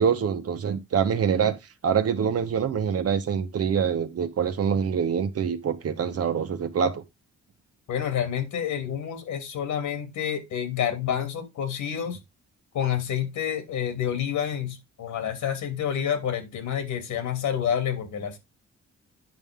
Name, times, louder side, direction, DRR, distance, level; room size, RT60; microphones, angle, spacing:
voice 1, 0.0-7.0, right 7 dB, 50° right, 1.3 m, -25 dB
voice 2, 7.9-12.2 12.7-18.4, left 9 dB, 75° left, 2.9 m, -28 dB
10.0 x 5.5 x 3.7 m
cardioid pair, 90°, 30 cm